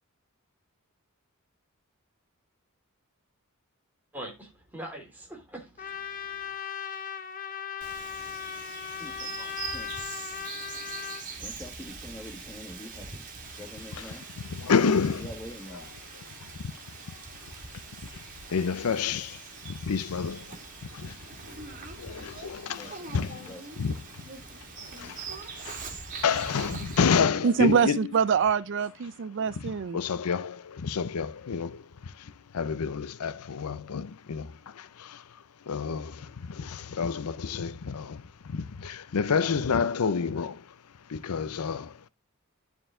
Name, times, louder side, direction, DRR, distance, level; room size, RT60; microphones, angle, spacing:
voice 1, 4.1-6.5, right 1 dB, 10° right, 2.9 m, -43 dB
Trumpet, 5.8-11.2, left 8 dB, 40° left, 0.9 m, -38 dB
Bird vocalization bird call bird song, 7.8-27.2, right 4 dB, 40° right, 2.2 m, -42 dB
voice 2, 9.0-9.9 11.4-13.2 13.5-14.2 15.1-15.9 22.7-23.6, left 1 dB, 15° left, 1.5 m, -45 dB
voice 3, 13.9-15.3 15.7-15.8 16.1-24.3 24.8-25.9 26.2-28.1 29.5-40.8 41.1-42.1, left 5 dB, 85° left, 0.6 m, -30 dB
voice 4, 27.4-30.0, right 6 dB, 55° right, 0.4 m, -24 dB
11.0 x 4.6 x 3.7 m
head